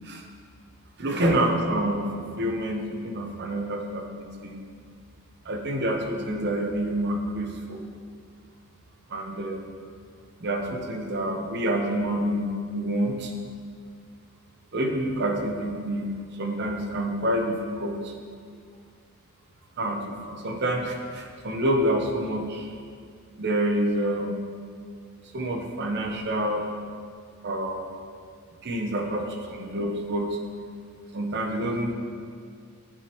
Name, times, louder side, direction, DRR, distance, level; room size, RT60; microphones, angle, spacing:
voice 1, 1.0-4.5 5.5-7.8 9.1-9.6 10.4-13.3 14.7-16.1 16.4-18.0 19.8-22.7 23.4-24.4 25.3-26.8 27.4-27.9 28.6-30.4 31.1-31.9, right 1 dB, 50° right, 3 dB, 0.8 m, -27 dB
9.8 x 7.4 x 3.0 m, 2.1 s
head